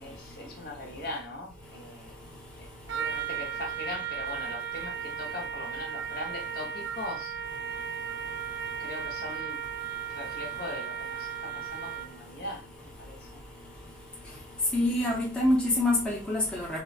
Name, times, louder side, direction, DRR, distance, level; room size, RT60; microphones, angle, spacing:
voice 1, 0.0-2.1 2.6-7.4 8.8-9.6 10.1-13.4, left 2 dB, 55° left, 0.9 m, -40 dB
Trumpet, 2.9-12.2, right 8 dB, 70° right, 0.3 m, -36 dB
voice 2, 14.7-16.8, left 1 dB, 5° left, 0.6 m, -26 dB
3.9 x 2.1 x 2.4 m
head